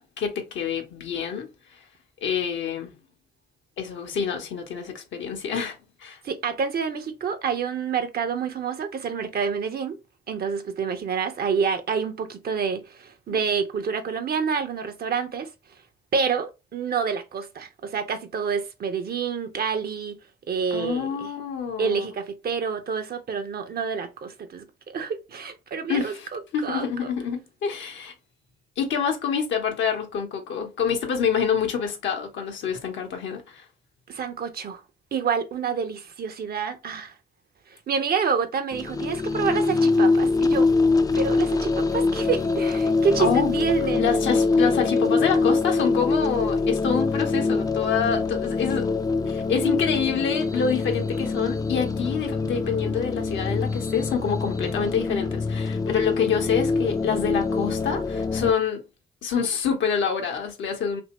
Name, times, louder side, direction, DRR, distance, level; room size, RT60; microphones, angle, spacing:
voice 1, 0.2-1.5 2.2-3.0 3.8-6.2 13.3-13.4 20.7-22.1 25.9-28.1 28.8-33.6 43.2-43.6 44.0-48.9 49.3-58.8 59.2-61.0, left 7 dB, 65° left, 0.8 m, -27 dB
voice 2, 6.2-10.0 10.3-15.5 16.1-20.2 20.5-21.3 21.8-27.1 34.1-34.8 35.1-37.1 37.7-40.7 41.1-44.1, right 6 dB, 50° right, 0.7 m, -28 dB
sound 1, 38.7-58.5, left 3 dB, 20° left, 0.4 m, -24 dB
2.8 x 2.6 x 2.9 m
hypercardioid pair, 45°, 21 cm